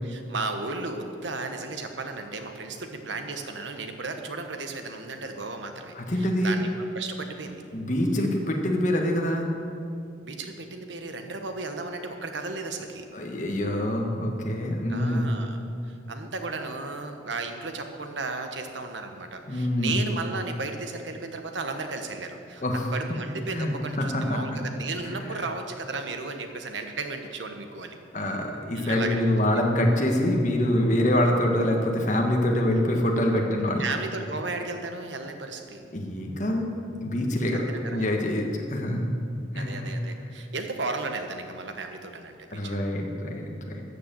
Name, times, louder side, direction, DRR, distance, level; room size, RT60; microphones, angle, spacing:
voice 1, 0.0-6.7 6.9-7.6 10.2-13.1 14.9-15.6 16.1-22.6 22.9-28.0 28.7-29.2 33.8-35.8 37.5-38.1 39.5-42.8, right 3 dB, 80° right, 5 dB, 1.2 m, -34 dB
voice 2, 5.9-6.6 7.7-9.5 13.1-15.4 19.5-20.0 22.6-22.9 23.5-24.4 25.0-25.3 28.1-33.8 35.9-39.1 39.5-39.9 42.5-43.7, left 1 dB, 40° left, 1 dB, 1.6 m, -25 dB
13.5 x 6.8 x 7.7 m, 2.5 s
head